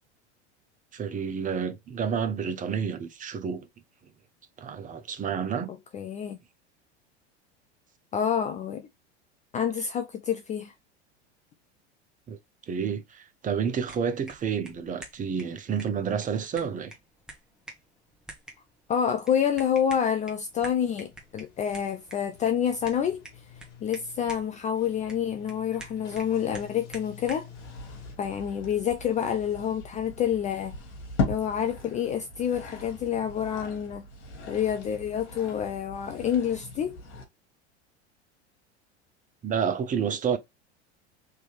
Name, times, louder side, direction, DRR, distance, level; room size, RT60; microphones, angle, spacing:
voice 1, 0.9-3.7 4.6-5.7 12.3-12.4 12.7-16.9 39.4-40.4, right 7 dB, 25° right, 0.6 m, -29 dB
voice 2, 5.9-6.4 8.1-8.9 9.5-10.7 18.9-23.2 23.8-27.5 28.2-30.7 31.3-34.1 34.5-37.0, left 8 dB, 20° left, 0.3 m, -28 dB
sound 1, 13.7-27.5, right 1 dB, ahead, 1.0 m, -49 dB
Sliding door, 20.3-28.2, left 8 dB, 50° left, 1.6 m, -50 dB
sound 2, 27.5-37.3, left 3 dB, 75° left, 1.4 m, -38 dB
3.2 x 2.7 x 3.1 m
hypercardioid pair, 90°, 34 cm